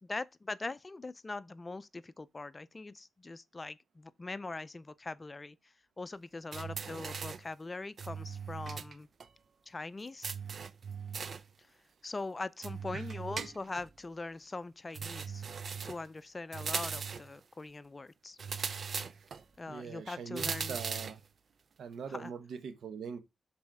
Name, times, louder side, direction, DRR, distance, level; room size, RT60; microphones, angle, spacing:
voice 1, 0.0-9.1 9.7-10.3 12.0-15.4 15.8-18.4 19.6-20.8 22.1-22.3, left 3 dB, 35° left, 0.5 m, -42 dB
sound 1, 6.5-7.5 8.0-8.9 9.2-9.3 10.2-11.5 12.6-13.9 14.9-16.1 16.5-17.3 18.4-19.4 20.4-21.2, right 6 dB, 65° right, 0.6 m, -39 dB
voice 2, 19.7-21.2 21.8-23.2, right 6 dB, 80° right, 1.0 m, -42 dB
6.1 x 4.2 x 4.6 m
cardioid pair, 50°, 0 cm